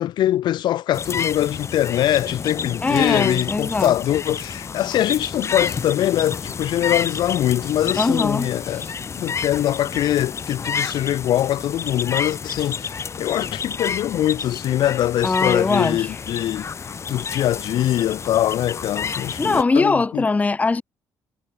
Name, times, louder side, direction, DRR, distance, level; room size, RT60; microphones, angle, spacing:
voice 1, 0.0-8.8 9.2-16.7 17.1-20.3, left 12 dB, 75° left, 1.6 m, -23 dB
sound 1, 0.9-19.6, left 6 dB, 40° left, 4.8 m, -30 dB
voice 2, 2.8-3.9 8.0-8.5 15.2-16.1 19.4-20.8, left 3 dB, 20° left, 1.0 m, -21 dB
cardioid pair, 115°, 8 cm